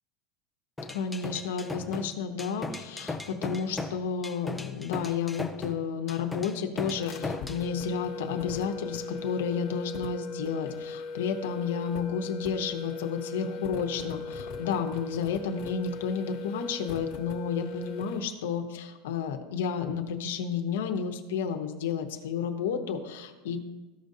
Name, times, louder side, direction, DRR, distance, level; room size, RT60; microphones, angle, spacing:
sound 1, 0.8-7.7, left 3 dB, 5° left, 0.4 m, -37 dB
voice 1, 0.9-23.6, left 6 dB, 90° left, 4 dB, 0.9 m, -31 dB
sound 2, 7.0-18.3, left 4 dB, 45° left, 1.2 m, -39 dB
14.5 x 5.2 x 2.7 m, 1.2 s
supercardioid pair, 155°, 0 cm